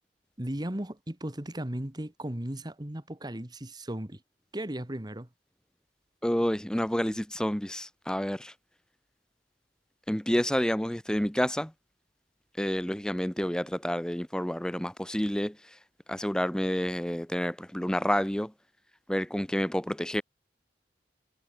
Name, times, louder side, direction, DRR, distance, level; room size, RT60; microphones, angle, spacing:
voice 1, 0.4-4.2 4.5-5.3, right 1 dB, 25° right, 1.6 m, -36 dB
voice 2, 6.2-8.5 10.1-11.7 12.6-15.8 16.1-18.5 19.1-20.2, equal, 5° left, 0.6 m, -29 dB
head